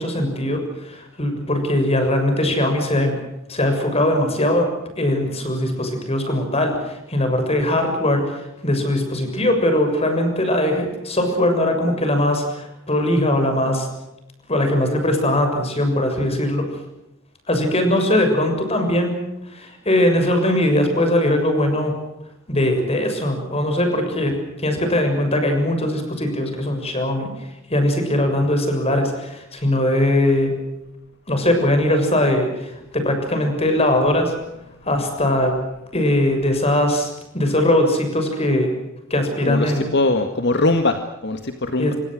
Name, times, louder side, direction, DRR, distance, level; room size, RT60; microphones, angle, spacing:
voice 1, 0.0-3.1 3.5-4.7 5.0-13.9 14.5-16.7 17.5-19.2 19.5-22.0 22.5-27.3 27.7-30.5 31.3-34.3 34.8-35.5 35.9-38.7 39.1-39.9 41.8-42.0, left 1 dB, 30° left, 6 dB, 6.9 m, -20 dB
voice 2, 39.4-41.9, left 2 dB, 55° left, 6 dB, 2.0 m, -21 dB
28.0 x 25.5 x 6.5 m, 0.91 s
head